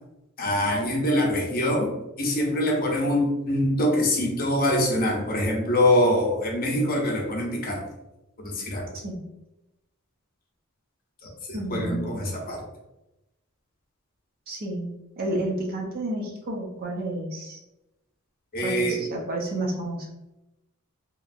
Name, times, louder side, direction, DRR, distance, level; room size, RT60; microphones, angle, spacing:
voice 1, 0.4-1.9 2.2-7.8 8.4-8.9 11.2-12.6 18.5-19.1, left 1 dB, 45° left, -1 dB, 0.7 m, -24 dB
voice 2, 8.9-9.3 11.5-12.1 14.5-14.9 15.2-17.6 18.6-20.1, right 1 dB, 45° right, 0 dB, 0.6 m, -30 dB
2.8 x 2.5 x 2.5 m, 0.94 s
head